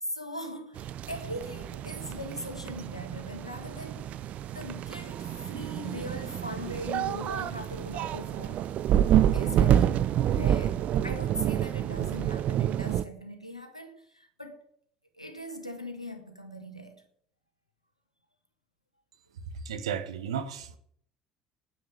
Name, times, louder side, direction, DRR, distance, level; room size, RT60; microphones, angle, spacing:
voice 1, 0.0-4.2 4.4-8.7 9.3-14.6 15.2-17.0, left 1 dB, 90° left, 1.7 m, -40 dB
sound 1, 0.8-13.0, right 11 dB, 45° right, 0.6 m, -28 dB
voice 2, 19.6-20.8, right 8 dB, 70° right, 1.2 m, -34 dB
9.6 x 9.6 x 9.9 m
figure-of-eight pair, 60°, 3 cm